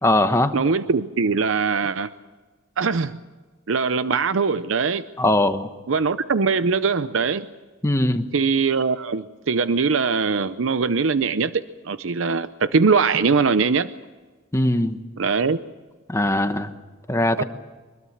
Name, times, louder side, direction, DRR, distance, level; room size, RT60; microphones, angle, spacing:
voice 1, 0.0-0.5 5.2-5.7 7.8-8.3 14.5-15.0 16.1-16.7 17.1-17.4, left 1 dB, 15° left, 8 dB, 1.1 m, -20 dB
voice 2, 0.5-2.1 2.8-3.2 3.7-5.0 5.9-7.5 8.3-13.9 15.2-15.6 17.4-17.5, right 5 dB, 70° right, 13 dB, 0.6 m, -21 dB
24.5 x 21.5 x 7.2 m, 1.3 s
head